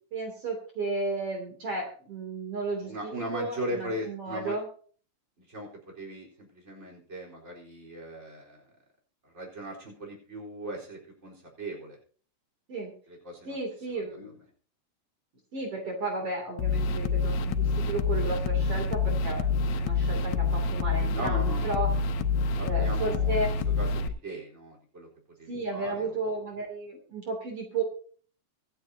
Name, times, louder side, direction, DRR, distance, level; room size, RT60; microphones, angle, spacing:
voice 1, 0.1-4.7 12.7-12.9 13.5-14.4 15.5-19.4 19.8-21.9 22.6-23.5 25.5-27.8, right 2 dB, 50° right, 2 dB, 3.7 m, -33 dB
voice 2, 2.8-4.6 5.4-8.6 9.2-12.0 13.1-13.6 13.9-14.0 21.0-21.8 22.6-23.4 23.8-25.1 25.4-26.3, right 1 dB, 20° right, -2 dB, 4.2 m, -38 dB
sound 1, 16.6-24.1, left 4 dB, 85° left, 2.3 m, -27 dB
25.0 x 9.1 x 2.8 m, 0.44 s
omnidirectional pair, 3.3 m